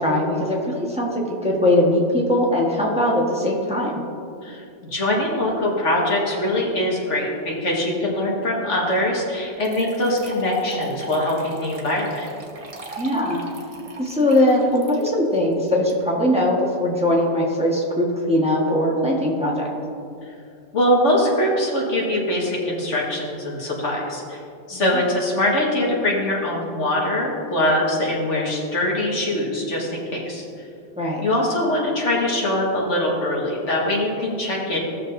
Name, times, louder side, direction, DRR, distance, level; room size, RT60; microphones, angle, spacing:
voice 1, 0.0-4.0 13.0-13.4 14.0-19.7 24.7-25.0 31.0-31.2, left 1 dB, 5° right, -4 dB, 1.4 m, -20 dB
voice 2, 4.4-12.3 20.7-24.4 24.7-30.4 31.2-34.8, left 1 dB, 85° left, -3 dB, 2.0 m, -22 dB
sound 1, 9.0-9.1 9.6-15.9, right 2 dB, 35° right, 1.0 m, -38 dB
16.5 x 6.5 x 2.7 m, 2.6 s
omnidirectional pair, 1.2 m